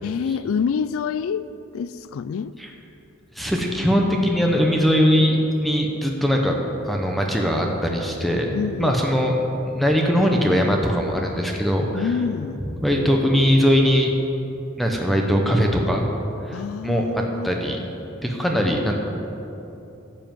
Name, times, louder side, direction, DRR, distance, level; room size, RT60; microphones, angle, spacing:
voice 1, 0.0-1.4 1.7-2.5 8.5-9.1 11.9-12.7 16.5-17.5, left 6 dB, 85° left, 15 dB, 0.3 m, -27 dB
voice 2, 3.3-6.5 6.8-12.1 12.6-14.1 14.8-16.1 16.5-17.0 17.4-17.8 18.2-18.9, equal, ahead, 1 dB, 0.9 m, -21 dB
12.0 x 7.7 x 7.7 m, 2.9 s
head